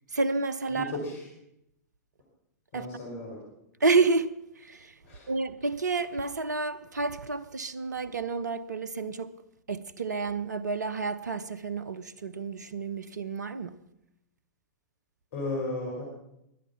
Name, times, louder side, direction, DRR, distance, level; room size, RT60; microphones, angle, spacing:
voice 1, 0.1-0.9 2.7-2.9 3.8-4.3 4.6-4.9 5.3-9.3 9.7-13.8, right 4 dB, 80° right, 0.9 m, -29 dB
voice 2, 0.7-1.3 2.7-3.4 5.0-5.3 15.3-16.1, left 2 dB, 50° left, 5.2 m, -35 dB
22.0 x 10.5 x 5.9 m
figure-of-eight pair, 105°, 9 cm